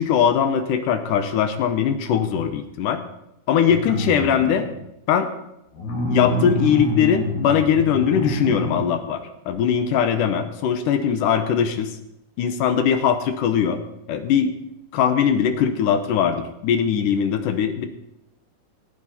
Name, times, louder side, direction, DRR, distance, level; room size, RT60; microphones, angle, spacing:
voice 1, 0.0-3.0 3.5-4.7 5.1-5.3 6.1-11.9 12.4-13.8 14.1-14.5 14.9-17.9, left 8 dB, 90° left, 9 dB, 2.5 m, -20 dB
sound 1, 3.6-4.8 5.7-8.9 9.5-9.6, left 1 dB, 70° left, 3.4 m, -27 dB
18.0 x 8.7 x 4.3 m, 0.85 s
omnidirectional pair, 3.6 m